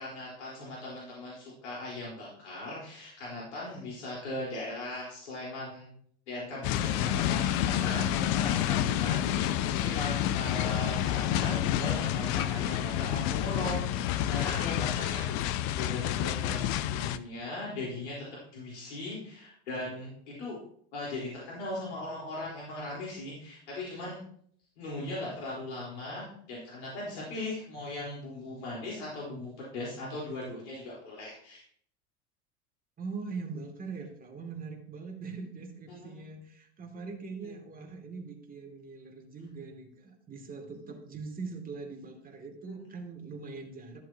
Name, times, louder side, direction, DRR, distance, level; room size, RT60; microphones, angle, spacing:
voice 1, 0.0-5.9 6.3-18.1 18.5-20.6 20.9-24.2 24.8-31.6 36.0-36.2 37.4-37.5 42.7-42.8, left 2 dB, 80° left, -5 dB, 4.1 m, -39 dB
sound 1, 6.6-17.2, left 11 dB, 55° left, 0.8 m, -29 dB
voice 2, 33.0-44.0, right 4 dB, 25° right, 2 dB, 2.6 m, -42 dB
14.0 x 7.4 x 2.9 m, 0.62 s
hypercardioid pair, 90°, 34 cm